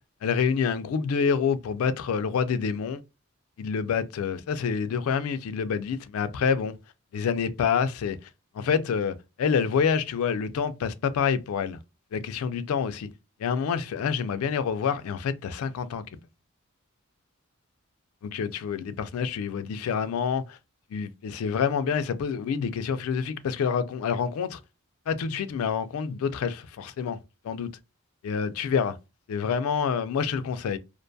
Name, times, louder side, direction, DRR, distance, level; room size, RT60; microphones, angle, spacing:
voice 1, 0.2-3.0 3.6-6.7 7.1-8.2 8.6-11.8 12.1-13.1 13.4-16.0 18.2-20.6 20.9-24.6 25.1-27.2 27.4-27.7 28.2-28.9 29.3-30.8, left 6 dB, 90° left, 0.3 m, -27 dB
2.5 x 2.2 x 2.5 m
head